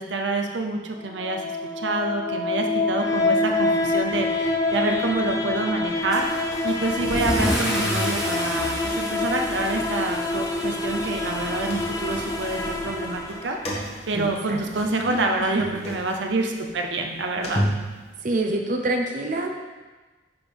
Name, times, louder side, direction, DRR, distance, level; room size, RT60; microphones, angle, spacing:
voice 1, 0.0-1.4 1.8-6.2 6.6-17.6, right 2 dB, 85° right, 2 dB, 0.7 m, -27 dB
sound 1, 1.0-14.0, left 2 dB, 15° left, 0.5 m, -27 dB
Car / Engine starting / Accelerating revving vroom, 6.1-13.5, equal, 5° right, 1.1 m, -32 dB
sound 2, 11.7-12.7 13.2-18.5, equal, 35° left, 1.4 m, -33 dB
voice 2, 14.1-14.6 15.4-15.7 18.2-19.6, right 2 dB, 45° right, 3 dB, 0.7 m, -26 dB
10.0 x 4.3 x 3.5 m, 1.3 s
head